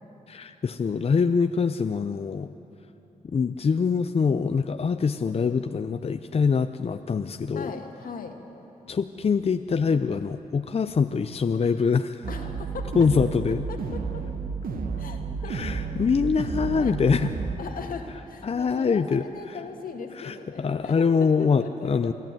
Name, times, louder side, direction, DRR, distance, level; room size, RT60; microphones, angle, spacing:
voice 1, 0.3-2.5 3.3-7.7 8.9-12.3 12.9-13.6 15.5-17.3 18.4-19.6 20.1-22.1, left 5 dB, 45° left, 9 dB, 0.6 m, -24 dB
voice 2, 7.5-8.4 12.3-12.9 13.7-14.2 15.0-15.6 16.4-17.0 17.6-22.1, left 5 dB, 75° left, 3 dB, 2.0 m, -39 dB
sound 1, 12.2-17.6, right 5 dB, 80° right, 1.4 m, -31 dB
23.0 x 13.0 x 9.1 m, 3.0 s
cardioid pair, 65°, 15 cm